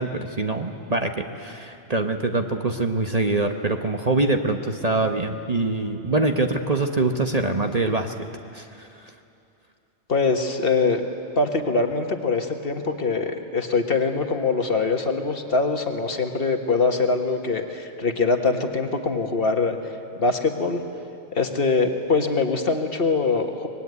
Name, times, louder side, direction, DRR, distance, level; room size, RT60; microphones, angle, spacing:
voice 1, 0.0-8.1 8.5-8.9, right 2 dB, 35° right, 5 dB, 1.1 m, -24 dB
voice 2, 10.1-11.0 11.3-19.8 20.2-20.8 21.3-23.7, left 3 dB, 50° left, 5 dB, 1.6 m, -23 dB
24.5 x 20.5 x 9.6 m, 2.7 s
omnidirectional pair, 1.3 m